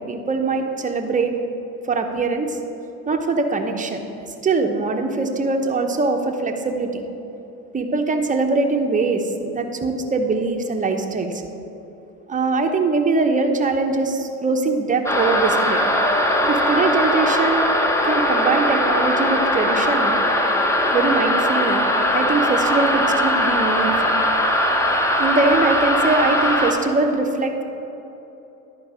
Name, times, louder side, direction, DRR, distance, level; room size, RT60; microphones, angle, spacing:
voice 1, 0.0-1.3 1.8-2.6 3.1-4.1 4.4-7.0 7.7-11.4 12.3-15.8 16.5-17.6 18.0-20.2 20.9-21.9 22.1-24.1 25.2-27.6, right 3 dB, 20° right, 4 dB, 0.8 m, -22 dB
sound 1, 15.1-26.7, equal, 5° left, 0.9 m, -20 dB
10.5 x 4.7 x 4.8 m, 3.0 s
hypercardioid pair, 80°, 39 cm